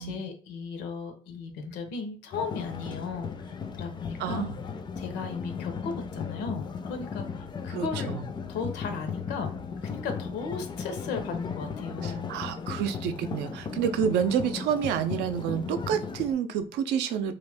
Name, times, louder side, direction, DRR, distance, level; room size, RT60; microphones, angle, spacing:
voice 1, 0.0-4.5 5.0-8.1 8.5-9.5 9.8-12.3, left 5 dB, 90° left, 6 dB, 0.7 m, -36 dB
sound 1, 2.3-16.3, left 6 dB, 25° left, 0.3 m, -36 dB
voice 2, 4.2-4.5 7.7-8.2 12.0-17.3, right 8 dB, 80° right, 9 dB, 0.4 m, -29 dB
2.6 x 2.4 x 3.3 m, 0.43 s
cardioid pair, 110°, 17 cm